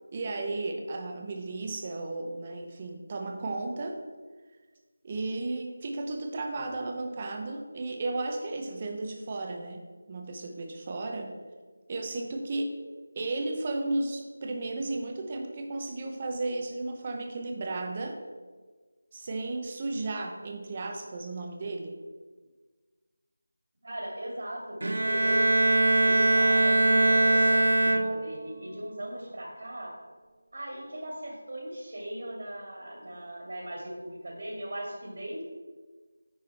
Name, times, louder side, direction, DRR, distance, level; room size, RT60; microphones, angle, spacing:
voice 1, 0.1-4.0 5.0-9.8 10.1-11.3 11.9-12.8 13.2-18.2 19.1-21.9, right 2 dB, 25° right, 2 dB, 0.8 m, -34 dB
voice 2, 23.8-25.4 26.0-29.9 30.5-35.4, right 1 dB, 60° right, -2 dB, 2.3 m, -38 dB
Bowed string instrument, 24.8-28.5, right 2 dB, 80° right, 0.7 m, -22 dB
9.6 x 4.8 x 4.2 m, 1.4 s
figure-of-eight pair, 175°, 0 cm